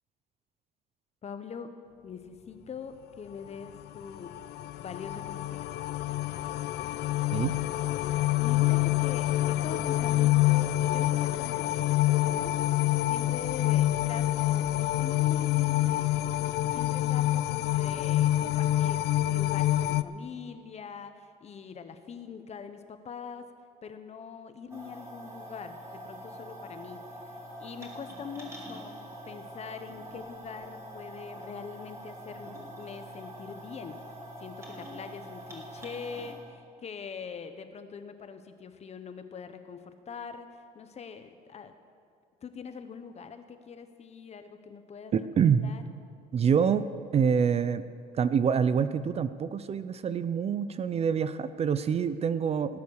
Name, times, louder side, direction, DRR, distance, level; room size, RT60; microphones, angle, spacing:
voice 1, 1.2-1.8 2.0-4.3 4.8-5.8 8.4-11.9 12.2-12.5 12.8-16.4 16.7-23.5 23.8-27.3 27.6-34.0 34.4-41.7 42.4-45.8, left 6 dB, 40° left, 9 dB, 1.1 m, -43 dB
sound 1, 3.8-20.0, left 15 dB, 75° left, 0.5 m, -27 dB
sound 2, 24.7-36.3, equal, 15° right, 2.8 m, -44 dB
voice 2, 45.1-45.7 46.3-46.8 47.1-47.9 48.2-52.8, right 7 dB, 40° right, 13 dB, 0.5 m, -26 dB
18.0 x 8.2 x 6.6 m, 2.2 s
cardioid pair, 110°, 17 cm